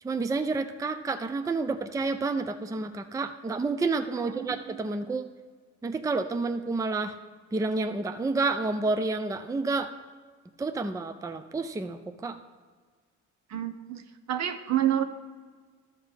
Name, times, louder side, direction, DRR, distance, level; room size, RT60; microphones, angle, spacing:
voice 1, 0.0-5.3 5.8-7.2 7.5-9.9 10.6-12.4, right 3 dB, 10° right, 8 dB, 0.4 m, -29 dB
voice 2, 4.2-4.8 13.5-15.0, right 11 dB, 65° right, 9 dB, 0.7 m, -29 dB
13.0 x 5.7 x 3.5 m, 1.5 s
cardioid pair, 90°, 30 cm